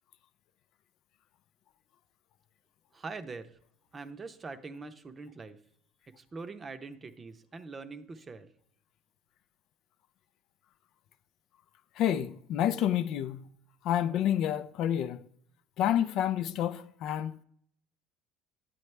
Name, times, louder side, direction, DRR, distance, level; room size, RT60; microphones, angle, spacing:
voice 1, 2.9-3.6 3.9-5.6 6.2-8.5, right 4 dB, 25° right, 0.7 m, -43 dB
voice 2, 12.0-13.4 13.8-15.2 15.8-17.4, left 10 dB, 60° left, 0.5 m, -29 dB
9.3 x 8.4 x 3.3 m
cardioid pair, 120°, 0 cm